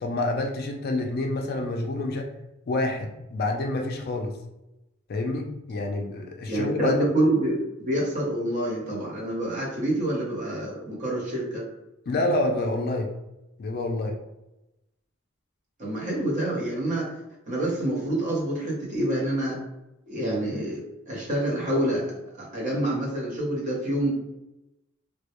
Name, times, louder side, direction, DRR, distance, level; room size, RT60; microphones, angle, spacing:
voice 1, 0.0-2.3 2.7-4.4 5.1-7.1 12.1-13.1 13.6-14.2, left 2 dB, 45° left, 3 dB, 0.3 m, -28 dB
voice 2, 6.5-11.7 15.8-17.1 17.5-19.6 20.1-24.1, right 1 dB, 40° right, -4 dB, 0.8 m, -27 dB
2.2 x 2.1 x 2.8 m, 0.94 s
head